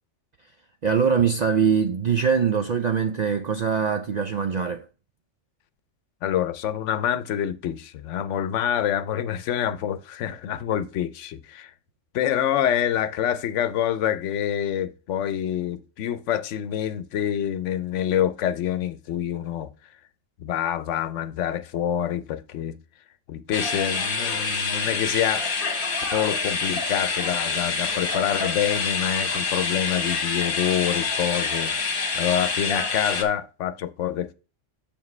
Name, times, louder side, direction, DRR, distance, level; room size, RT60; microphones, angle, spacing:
voice 1, 0.8-4.8, right 6 dB, 65° right, 0.4 m, -22 dB
voice 2, 6.2-11.7 12.1-19.7 20.4-22.8 23.3-25.5 26.0-31.7 32.1-34.3, left 10 dB, 85° left, 0.9 m, -26 dB
sound 1, 23.5-33.2, left 4 dB, 50° left, 1.3 m, -27 dB
7.2 x 7.0 x 3.2 m
omnidirectional pair, 1.2 m